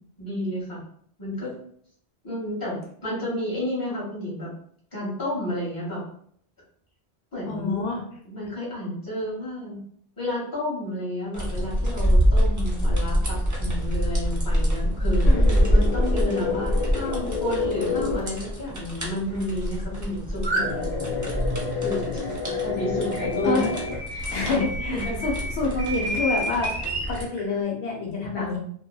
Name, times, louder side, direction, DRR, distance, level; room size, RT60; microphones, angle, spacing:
voice 1, 0.2-0.8 1.2-1.5 2.2-4.5 4.9-6.0 7.3-7.9 8.2-9.8 10.2-21.0 21.8-23.7 24.1-24.6 24.9-25.2 28.3-28.5, left 1 dB, 20° left, -7 dB, 1.1 m, -31 dB
voice 2, 7.5-8.0 15.2-15.6 23.4-23.7 24.3-26.7 27.1-28.6, left 3 dB, 85° left, 0 dB, 0.9 m, -27 dB
sound 1, 11.3-27.3, equal, 30° right, 0.3 m, -26 dB
sound 2, 15.2-18.2 20.6-24.0, left 4 dB, 60° left, 0.9 m, -29 dB
sound 3, 20.4-20.6 21.3-24.3 24.6-27.4, right 1 dB, 45° right, 0.7 m, -31 dB
2.8 x 2.2 x 2.2 m, 0.63 s
omnidirectional pair, 1.1 m